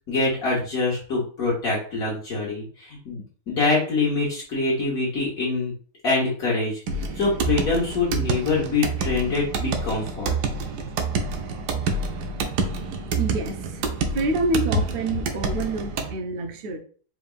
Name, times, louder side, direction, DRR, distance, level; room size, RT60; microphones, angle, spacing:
voice 1, 0.1-5.7 6.0-6.8 7.2-10.3, left 3 dB, 60° left, 1.6 m, -25 dB
sound 1, 6.9-16.1, right 4 dB, 90° right, 1.2 m, -28 dB
voice 2, 13.2-16.8, right 2 dB, 65° right, 0.5 m, -27 dB
4.6 x 3.4 x 2.4 m
omnidirectional pair, 1.7 m